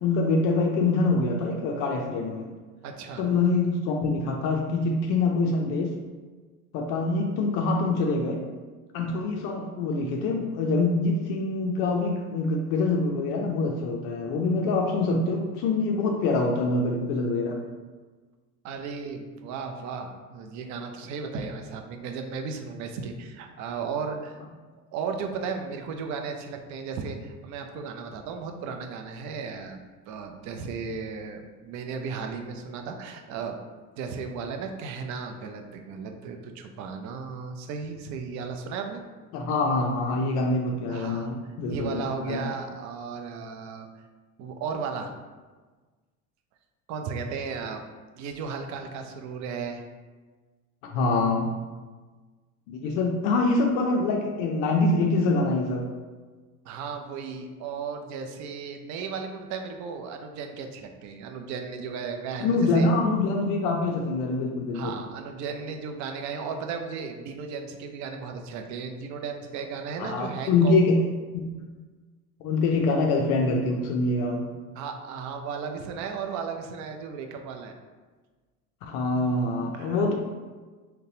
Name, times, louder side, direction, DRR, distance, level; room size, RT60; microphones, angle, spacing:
voice 1, 0.0-2.5 3.2-5.9 6.7-8.4 8.9-17.6 39.3-42.4 50.8-51.5 52.7-55.9 62.4-65.0 70.0-71.0 71.3-71.5 72.4-74.5 78.8-80.1, left 3 dB, 50° left, 1 dB, 0.5 m, -25 dB
voice 2, 2.8-3.3 18.6-24.4 24.9-33.6 33.9-39.0 40.9-41.3 41.7-43.9 44.4-45.1 46.9-47.8 48.1-49.8 56.7-62.9 64.7-70.7 74.8-77.7 79.7-80.0, right 5 dB, 40° right, 5 dB, 0.5 m, -35 dB
3.8 x 2.2 x 2.6 m, 1.3 s
hypercardioid pair, 75°, 45 cm